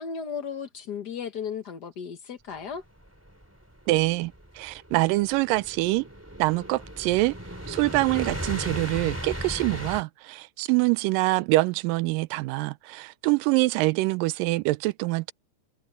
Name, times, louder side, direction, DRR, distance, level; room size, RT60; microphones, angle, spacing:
voice 1, 0.0-2.8, left 6 dB, 70° left, 0.9 m, -35 dB
sound 1, 3.0-10.0, equal, 5° right, 3.3 m, -36 dB
voice 2, 3.9-6.1 6.4-7.4 7.7-15.3, right 21 dB, 85° right, 2.3 m, -25 dB
omnidirectional pair, 3.9 m